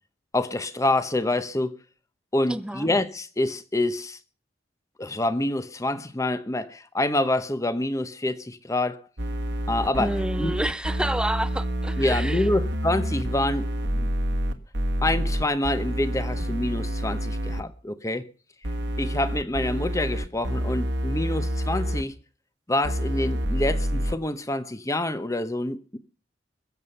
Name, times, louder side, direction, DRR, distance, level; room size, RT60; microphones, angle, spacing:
voice 1, 0.3-1.8 2.3-4.2 5.0-9.0 9.7-10.5 12.0-13.7 13.9-14.1 15.0-18.3 19.0-22.2 22.7-26.0, left 1 dB, 15° left, 0.9 m, -27 dB
voice 2, 2.5-2.9 10.0-12.5, right 1 dB, 5° right, 0.6 m, -29 dB
sound 1, 9.2-17.6 18.6-22.0 22.8-24.1, equal, 70° right, 1.5 m, -28 dB
22.5 x 7.6 x 5.5 m
head